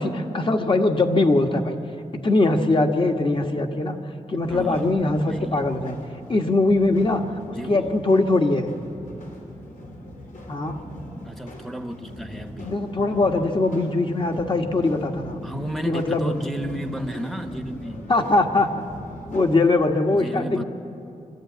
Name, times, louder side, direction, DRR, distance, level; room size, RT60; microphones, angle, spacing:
voice 1, 0.0-1.7 2.1-4.0 4.3-5.9 6.3-8.7 10.5-10.8 12.6-15.4 15.8-16.3 18.1-18.9 19.3-20.6, left 2 dB, 40° left, 1.4 m, -21 dB
voice 2, 4.3-5.6 7.5-7.9 11.2-12.8 15.4-18.1 20.1-20.6, equal, ahead, 1.0 m, -33 dB
sound 1, 4.4-19.7, left 1 dB, 75° left, 3.6 m, -40 dB
23.5 x 13.0 x 9.2 m
wide cardioid pair, 120°, 14 cm